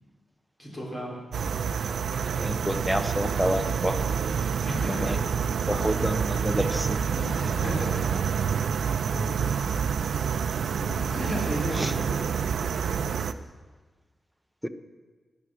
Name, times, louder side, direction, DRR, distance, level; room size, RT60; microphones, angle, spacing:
voice 1, 0.6-1.2 4.7-5.2 7.5-8.0 11.1-12.3, equal, 20° left, -2 dB, 3.8 m, -33 dB
sound 1, 1.3-13.3, right 7 dB, 85° right, 0.5 m, -28 dB
voice 2, 2.4-4.1 4.9-5.2 5.7-7.0 11.7-11.9 14.6-14.7, equal, ahead, 8 dB, 0.8 m, -28 dB
Animal, 7.0-8.1 8.9-10.0 10.8-11.8, left 2 dB, 60° left, 2.8 m, -40 dB
17.0 x 9.8 x 6.3 m, 1.4 s
wide cardioid pair, 165°, 0 cm